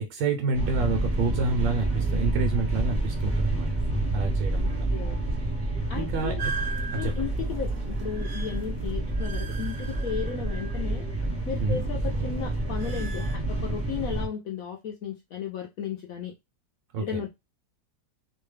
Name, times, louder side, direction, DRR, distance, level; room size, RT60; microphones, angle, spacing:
voice 1, 0.0-3.8 4.1-4.9 6.0-6.5 6.9-7.3 11.6-11.8 16.9-17.2, right 3 dB, 80° right, 1.3 m, -29 dB
sound 1, 0.5-14.3, right 2 dB, 10° right, 0.7 m, -28 dB
voice 2, 5.9-6.4 6.9-11.0 11.5-16.3 17.0-17.3, left 8 dB, 75° left, 0.8 m, -35 dB
sound 2, 6.4-11.1 11.4-13.4, right 5 dB, 65° right, 0.9 m, -40 dB
3.1 x 2.2 x 3.1 m
omnidirectional pair, 1.9 m